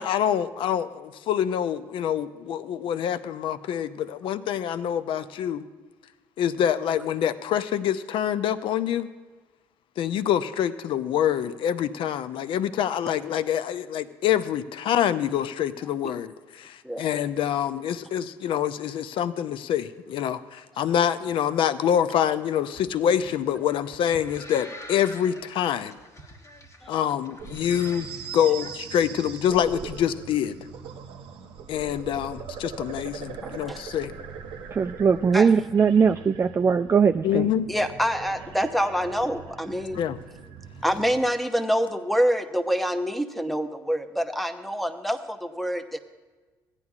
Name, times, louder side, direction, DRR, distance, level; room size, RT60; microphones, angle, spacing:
voice 1, 0.0-5.6 6.4-9.1 10.0-26.0 26.9-28.1 28.3-30.6 31.7-34.1 37.2-37.7 39.9-40.2, left 9 dB, 60° left, 14 dB, 0.5 m, -26 dB
sound 1, 22.7-29.0, equal, 30° left, 1.3 m, -46 dB
sound 2, 27.4-41.2, right 6 dB, 65° right, 0.8 m, -41 dB
voice 2, 33.4-33.8 35.3-35.5 37.7-40.0 40.8-46.0, equal, ahead, 8 dB, 0.9 m, -26 dB
voice 3, 34.7-37.5, right 6 dB, 25° right, 6 dB, 0.3 m, -20 dB
16.5 x 9.7 x 2.4 m, 1.3 s
hypercardioid pair, 55°, 10 cm